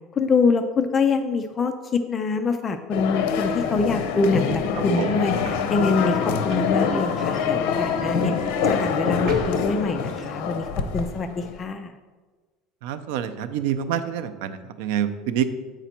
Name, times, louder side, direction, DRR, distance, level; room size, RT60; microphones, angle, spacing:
voice 1, 0.1-10.7 10.9-11.9, left 4 dB, 20° left, 7 dB, 0.3 m, -25 dB
sound 1, 2.9-11.6, left 6 dB, 75° left, 0.7 m, -25 dB
sound 2, 3.2-10.7, right 2 dB, 45° right, 1.2 m, -42 dB
voice 2, 12.8-15.5, right 9 dB, 75° right, 11 dB, 0.5 m, -27 dB
8.0 x 5.0 x 4.4 m, 1.3 s
cardioid pair, 170°, 0 cm